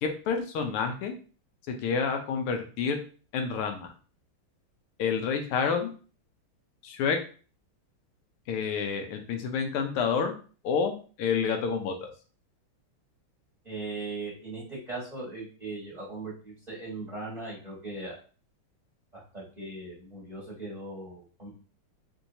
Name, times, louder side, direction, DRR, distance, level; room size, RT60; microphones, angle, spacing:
voice 1, 0.0-1.1 1.7-3.0 3.3-3.9 5.0-5.9 6.8-7.2 8.5-10.3 10.6-12.1, left 6 dB, 85° left, 5 dB, 1.6 m, -29 dB
voice 2, 13.6-18.2 19.1-21.5, right 2 dB, 25° right, -6 dB, 1.2 m, -39 dB
4.4 x 2.7 x 2.7 m, 0.38 s
omnidirectional pair, 2.4 m